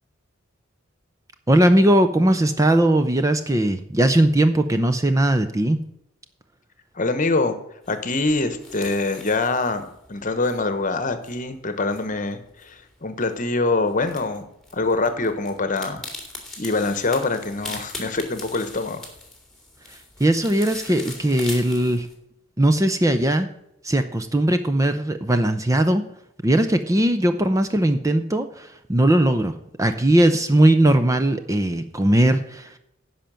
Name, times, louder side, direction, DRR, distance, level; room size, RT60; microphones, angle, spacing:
voice 1, 1.5-5.8 20.2-22.1 22.6-23.5 23.8-26.0 26.4-29.5 29.8-32.8, right 1 dB, 15° right, 8 dB, 0.6 m, -19 dB
voice 2, 6.9-7.6 7.9-14.5 14.7-16.0 16.6-19.1, left 3 dB, 40° left, 10 dB, 1.1 m, -24 dB
sound 1, 7.8-22.1, left 2 dB, ahead, 2.3 m, -41 dB
10.5 x 5.8 x 7.5 m, 0.78 s
head